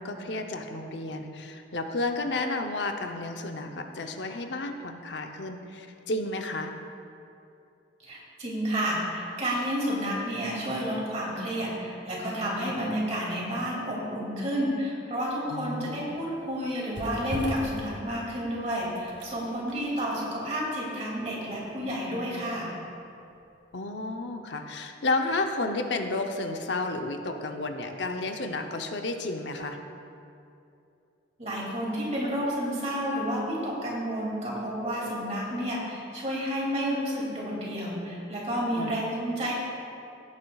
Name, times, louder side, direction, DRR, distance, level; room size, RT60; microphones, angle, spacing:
voice 1, 0.0-6.7 15.5-15.9 23.7-29.8 38.8-38.9, left 2 dB, 75° left, 5 dB, 0.7 m, -32 dB
voice 2, 8.0-22.7 31.4-39.5, equal, 35° right, -4 dB, 2.5 m, -30 dB
sound 1, 15.7-23.6 24.0-24.1, right 1 dB, 90° right, 1.7 m, -41 dB
16.0 x 9.4 x 2.4 m, 2.7 s
head